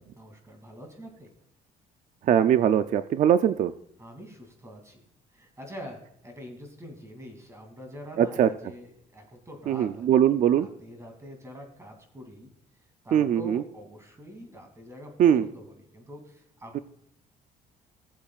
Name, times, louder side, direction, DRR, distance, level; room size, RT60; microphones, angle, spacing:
voice 1, 0.2-1.3 4.0-5.1 5.3-6.0 6.2-10.1 10.5-12.5 13.0-15.1 15.4-16.8, equal, 15° right, 3 dB, 2.5 m, -45 dB
voice 2, 2.2-3.7 8.2-8.5 9.7-10.7 13.1-13.6 15.2-15.5 16.7-16.8, right 9 dB, 50° right, 11 dB, 0.4 m, -21 dB
19.5 x 7.3 x 2.4 m, 0.69 s
cardioid pair, 110°, 17 cm